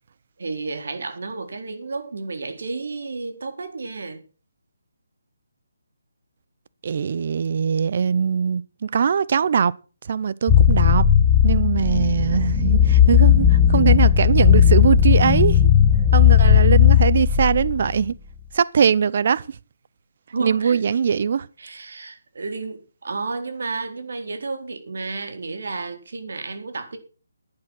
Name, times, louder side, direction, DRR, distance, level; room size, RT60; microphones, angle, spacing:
voice 1, 0.4-4.2 20.3-21.0 21.6-27.0, right 3 dB, 65° right, 3.9 m, -32 dB
voice 2, 6.8-9.7 10.1-11.0 11.4-15.7 16.1-18.1 18.5-19.4 20.4-21.5, right 7 dB, 45° right, 0.7 m, -21 dB
sound 1, 10.5-18.0, left 9 dB, 10° left, 1.1 m, -15 dB
10.5 x 10.5 x 6.3 m
hypercardioid pair, 165°, 0 cm